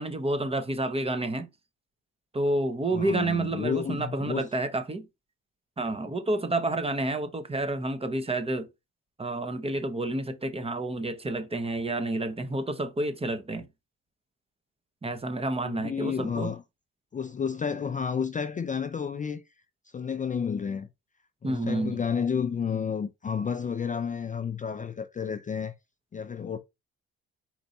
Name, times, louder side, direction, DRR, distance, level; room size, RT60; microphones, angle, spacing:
voice 1, 0.0-1.5 2.3-5.1 5.8-8.7 9.2-13.7 15.0-16.5 21.4-22.0, right 2 dB, 20° right, 0.8 m, -29 dB
voice 2, 2.9-4.5 15.6-16.6 17.1-19.4 19.9-20.9 21.4-25.7 26.1-26.6, left 6 dB, 25° left, 0.4 m, -31 dB
4.5 x 2.6 x 4.1 m
cardioid pair, 90°, 30 cm